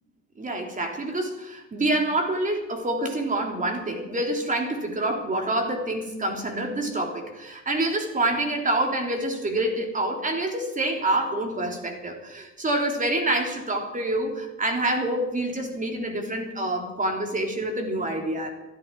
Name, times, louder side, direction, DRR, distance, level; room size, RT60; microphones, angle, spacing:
voice 1, 0.4-18.5, right 1 dB, 15° right, 3 dB, 3.5 m, -27 dB
23.0 x 13.0 x 4.7 m, 1.0 s
figure-of-eight pair, 75°, 50 cm